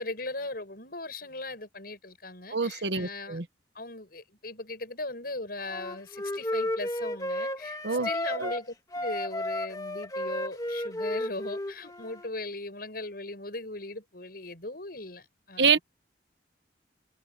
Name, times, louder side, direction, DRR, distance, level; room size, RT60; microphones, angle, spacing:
voice 1, 0.0-3.4 3.7-7.8 8.0-15.8, left 2 dB, 55° left, 8.0 m, -38 dB
voice 2, 2.5-3.4 7.8-8.1 8.4-8.5 15.6-15.8, right 5 dB, 75° right, 1.3 m, -26 dB
Wind instrument woodwind instrument, 5.7-8.6 8.9-12.3, left 1 dB, 20° left, 1.9 m, -33 dB
head